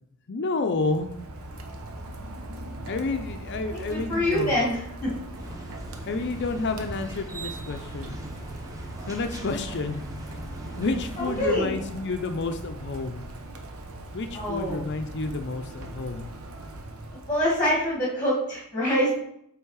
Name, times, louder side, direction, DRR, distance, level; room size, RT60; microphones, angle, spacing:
voice 1, 0.3-1.1 2.9-4.6 6.0-8.2 9.1-10.0 10.8-13.2 14.1-16.3, left 3 dB, 50° left, 7 dB, 0.5 m, -30 dB
Rain, 0.7-18.0, right 1 dB, 70° right, 1.0 m, -40 dB
voice 2, 3.7-5.1 11.2-11.8 14.3-14.8 17.3-19.1, equal, 10° left, -4 dB, 1.8 m, -25 dB
sound 1, 5.3-11.6, right 1 dB, 15° right, 0.8 m, -41 dB
8.2 x 3.5 x 4.7 m, 0.74 s
head